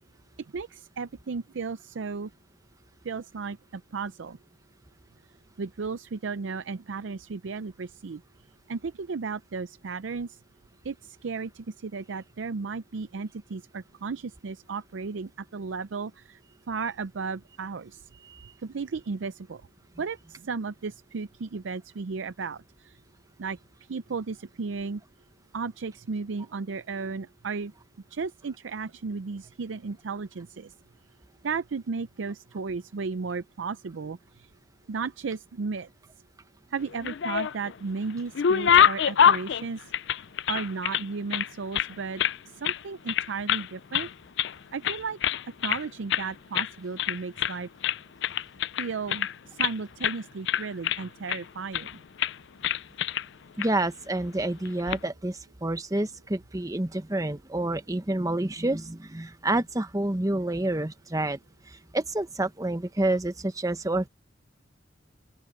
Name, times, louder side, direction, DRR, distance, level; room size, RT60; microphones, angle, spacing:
voice 1, 0.5-2.3 3.0-4.4 5.6-8.2 8.7-10.4 10.8-16.4 16.7-18.1 18.6-19.6 20.0-23.0 23.4-23.6 23.9-25.0 25.5-27.7 28.1-30.7 31.4-34.5 34.9-35.9 36.7-39.9 40.5-42.2 42.5-44.1 44.7-45.2 45.6-47.7 48.8-52.0, right 4 dB, 80° right, 0.5 m, -34 dB
sound 1, 36.9-37.7 38.1-41.0 41.3-42.4 42.6-42.8 43.1-43.7 43.9-44.6 44.8-45.8 46.1-46.3 46.5-46.7 47.0-47.6 47.8-49.7 50.0-50.2 50.5-51.4 51.7-51.9 52.2-52.4 52.6-53.3 53.6-53.7 54.7-55.0, left 8 dB, 65° left, 0.4 m, -25 dB
voice 2, 53.6-61.4 61.7-64.1, right 1 dB, 20° right, 0.9 m, -28 dB
open air
head